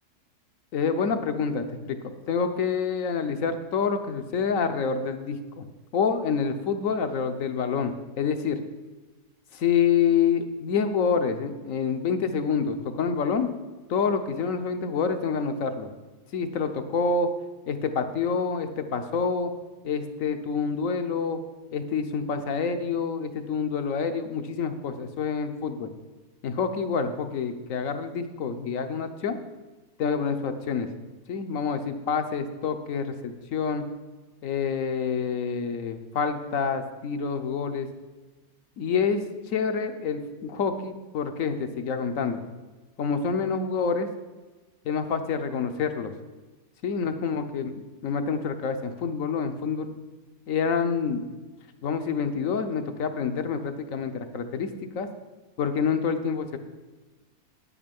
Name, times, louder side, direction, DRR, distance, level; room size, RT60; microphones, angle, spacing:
voice 1, 0.7-2.0 2.3-5.7 5.9-8.6 9.5-13.5 13.9-15.9 16.3-17.3 17.7-19.5 19.8-21.4 21.7-25.9 26.4-29.4 30.0-30.9 31.3-33.9 34.4-37.9 38.8-42.4 43.0-44.1 44.8-46.1 46.8-49.9 50.5-51.2 51.8-55.1 55.6-56.6, left 6 dB, 65° left, 8 dB, 1.2 m, -27 dB
9.2 x 8.8 x 5.3 m, 1.2 s
omnidirectional pair, 1.6 m